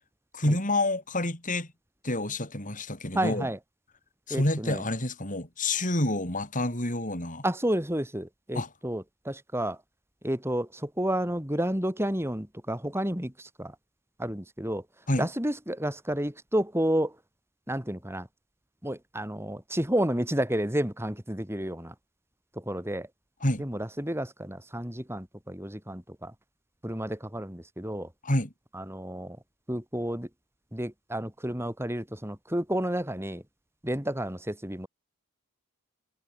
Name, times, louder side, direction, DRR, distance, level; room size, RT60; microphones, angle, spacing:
voice 1, 0.3-1.7 2.0-3.5 4.3-7.4 8.5-8.7 15.1-15.3 23.4-23.6 28.2-28.5, left 1 dB, 35° left, 7.4 m, -28 dB
voice 2, 3.1-3.6 4.3-4.8 7.4-9.8 10.2-13.8 14.2-14.8 15.2-17.2 17.7-18.3 18.8-21.9 22.5-23.1 23.6-26.3 26.8-28.1 28.7-29.4 29.7-30.3 30.7-33.4 33.8-34.9, right 1 dB, 10° right, 5.2 m, -31 dB
head